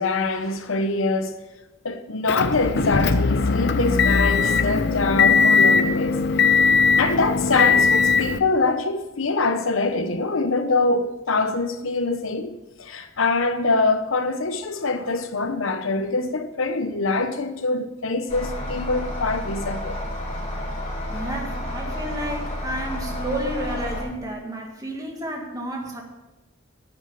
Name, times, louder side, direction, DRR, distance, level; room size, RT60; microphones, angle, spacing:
voice 1, 0.0-1.3 1.8-6.2 7.0-20.0, left 3 dB, 80° left, 1.0 m, -24 dB
Motor vehicle (road) / Engine, 2.3-8.4, left 5 dB, 55° left, 0.6 m, -19 dB
sound 1, 18.3-24.0, left 1 dB, 35° left, 4.2 m, -30 dB
voice 2, 21.1-26.0, right 1 dB, 15° right, 1.8 m, -31 dB
9.9 x 7.6 x 6.9 m
head